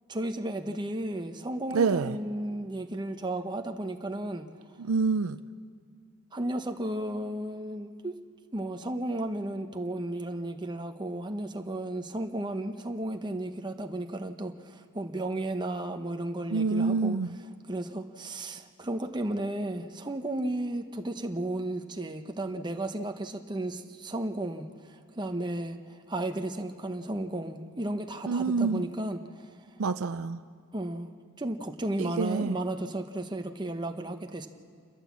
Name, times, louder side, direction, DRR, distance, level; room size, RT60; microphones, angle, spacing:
voice 1, 0.1-4.5 6.3-8.1 8.5-17.2 17.7-29.5 30.7-31.1 31.4-34.5, right 1 dB, 20° right, 1.0 m, -34 dB
voice 2, 1.7-2.2 4.8-5.4 16.5-17.3 28.3-28.8 29.8-30.4 32.0-32.6, right 4 dB, 75° right, 0.5 m, -27 dB
29.0 x 13.0 x 7.3 m
head